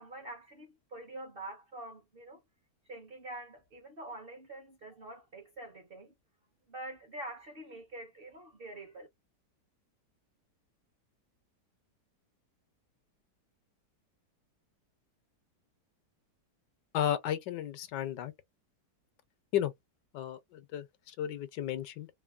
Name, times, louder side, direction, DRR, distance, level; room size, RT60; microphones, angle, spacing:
voice 1, 0.0-2.4 2.9-6.1 6.7-9.1, right 1 dB, 55° right, 0.6 m, -46 dB
voice 2, 16.9-18.3 19.5-19.7 20.1-22.1, left 11 dB, 85° left, 1.3 m, -33 dB
3.3 x 2.1 x 2.3 m
omnidirectional pair, 1.8 m